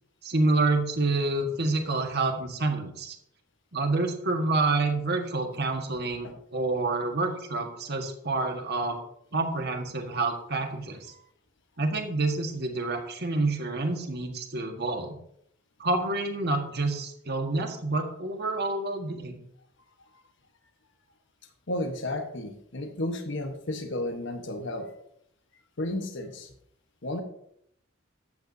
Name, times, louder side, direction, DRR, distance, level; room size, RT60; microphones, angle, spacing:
voice 1, 0.2-3.2 3.7-9.0 9.3-11.1 11.8-15.2 15.8-19.4, right 2 dB, 50° right, 4 dB, 1.6 m, -28 dB
voice 2, 21.7-24.9 25.8-26.5 27.0-27.2, left 1 dB, 60° left, 5 dB, 1.3 m, -33 dB
14.0 x 10.5 x 2.8 m, 0.72 s
head